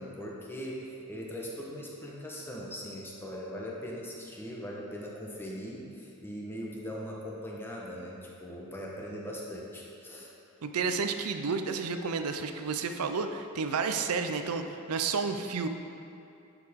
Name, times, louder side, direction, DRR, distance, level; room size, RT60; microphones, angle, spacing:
voice 1, 0.0-10.3, equal, 10° left, -3 dB, 1.0 m, -40 dB
voice 2, 10.6-15.7, right 5 dB, 80° right, 7 dB, 0.5 m, -31 dB
10.5 x 4.9 x 3.6 m, 2.7 s
head